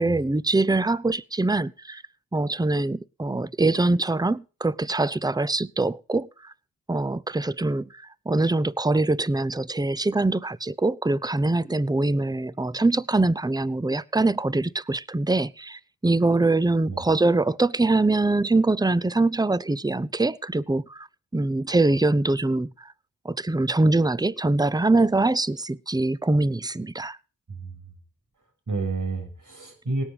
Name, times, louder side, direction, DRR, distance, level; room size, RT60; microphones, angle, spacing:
voice 1, 0.0-2.0 2.3-6.5 6.9-21.1 21.3-22.9 23.2-27.2, right 2 dB, 10° right, 0.7 m, -23 dB
voice 2, 27.5-27.8 28.7-30.0, right 3 dB, 60° right, 6.4 m, -30 dB
18.0 x 9.2 x 5.1 m
cardioid pair, 40°, 35 cm